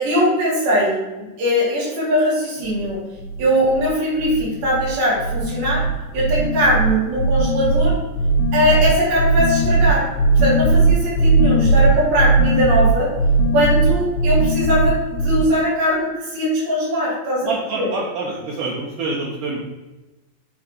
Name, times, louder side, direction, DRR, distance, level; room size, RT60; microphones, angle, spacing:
voice 1, 0.0-3.0 3.4-5.8 6.1-8.0 8.5-10.0 10.4-13.1 13.5-17.9, equal, 90° right, -6 dB, 4.3 m, -20 dB
sound 1, 2.6-2.9 3.2-3.9 4.2-4.9 5.2-15.4, right 2 dB, 80° left, 2.2 m, -18 dB
voice 2, 17.4-19.6, right 3 dB, 70° right, -3 dB, 2.2 m, -26 dB
8.4 x 3.0 x 5.0 m, 1.1 s
omnidirectional pair, 4.2 m